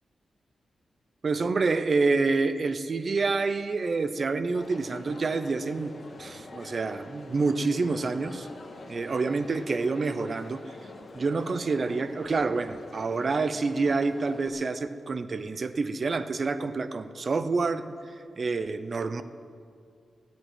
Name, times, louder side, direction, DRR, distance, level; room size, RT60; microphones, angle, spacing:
voice 1, 1.2-5.9 6.2-8.5 8.9-10.6 11.1-17.8 18.4-19.2, right 4 dB, 45° right, 12 dB, 0.7 m, -27 dB
Crowd, 4.5-14.5, left 2 dB, 45° left, 1.9 m, -45 dB
13.5 x 9.0 x 9.1 m, 2.4 s
wide cardioid pair, 105°, 0 cm